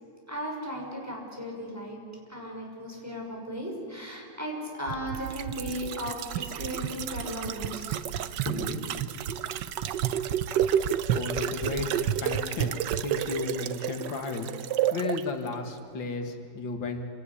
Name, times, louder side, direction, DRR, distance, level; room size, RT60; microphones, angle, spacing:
voice 1, 0.3-2.0 2.3-8.0 8.4-8.9, equal, 10° right, -1 dB, 5.8 m, -36 dB
sound 1, 4.9-15.2 15.5-15.6, right 10 dB, 75° right, 1.4 m, -30 dB
voice 2, 11.1-17.1, left 3 dB, 85° left, 5 dB, 2.5 m, -34 dB
27.0 x 18.0 x 9.9 m, 2.4 s
omnidirectional pair, 2.0 m